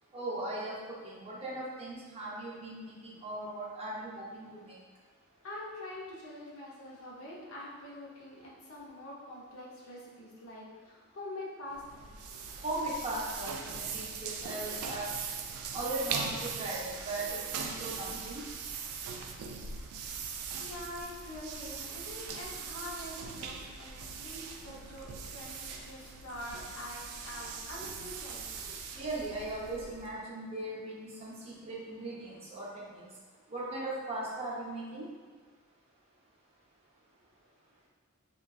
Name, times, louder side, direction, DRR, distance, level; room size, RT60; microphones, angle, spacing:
voice 1, 0.1-4.8 12.6-15.1 15.7-18.5 29.0-33.1 33.5-35.1, right 2 dB, 25° right, -5 dB, 0.5 m, -38 dB
voice 2, 5.4-12.6 20.6-28.8, left 1 dB, 65° left, -5 dB, 0.7 m, -45 dB
sound 1, 11.7-30.2, right 5 dB, 80° right, 0.3 m, -40 dB
3.8 x 2.2 x 2.3 m, 1.5 s
head